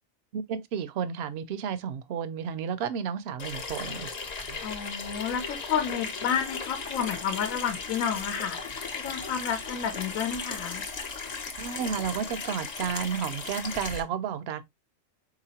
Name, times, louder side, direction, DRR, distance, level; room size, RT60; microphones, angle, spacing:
voice 1, 0.3-4.1 4.4-4.6 11.6-14.7, right 7 dB, 65° right, 0.7 m, -32 dB
Water tap faucet / Sink (filling or washing), 3.4-14.0, left 4 dB, 40° left, 0.6 m, -36 dB
voice 2, 4.6-10.8, left 8 dB, 85° left, 1.1 m, -31 dB
4.0 x 2.9 x 2.7 m
omnidirectional pair, 1.4 m